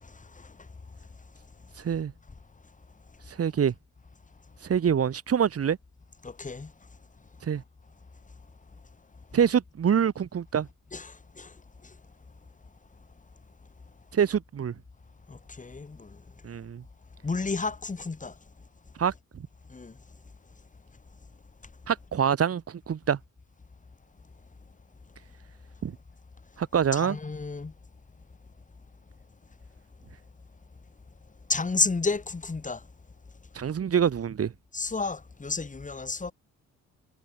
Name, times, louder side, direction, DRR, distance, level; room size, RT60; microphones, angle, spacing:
voice 1, 0.0-0.7 6.2-6.7 10.9-11.6 11.8-12.0 15.3-16.2 17.2-18.4 19.7-20.0 26.9-27.7 31.5-32.9 34.7-36.3, left 4 dB, 25° left, 5.1 m, -32 dB
voice 2, 1.8-2.1 3.3-3.7 4.6-5.8 7.4-7.6 9.3-10.7 14.1-14.7 16.4-16.8 19.0-19.1 21.9-23.2 25.8-26.0 26.6-27.2 33.6-34.5, right 8 dB, 50° right, 3.8 m, -25 dB
cardioid pair, 90°, 30 cm